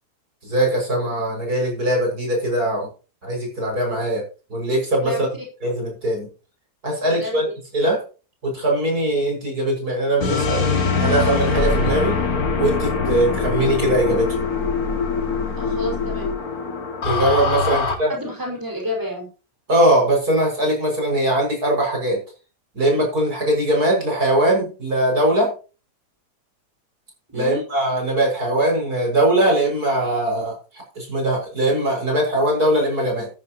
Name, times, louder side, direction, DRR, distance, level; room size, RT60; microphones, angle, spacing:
voice 1, 0.4-2.9 3.2-4.2 4.5-5.3 5.6-6.3 6.8-7.4 7.7-8.0 8.4-10.7 11.0-12.2 12.6-14.3 17.0-18.1 19.7-22.2 22.7-25.5 27.3-30.6 31.0-33.3, right 1 dB, 70° right, 0 dB, 7.1 m, -21 dB
voice 2, 7.1-7.6 15.6-16.3 18.1-19.3 27.3-27.6, equal, 10° right, -1 dB, 5.5 m, -29 dB
sound 1, 10.2-17.9, left 4 dB, 65° left, 2.6 m, -23 dB
13.5 x 12.5 x 3.0 m, 0.34 s
omnidirectional pair, 1.7 m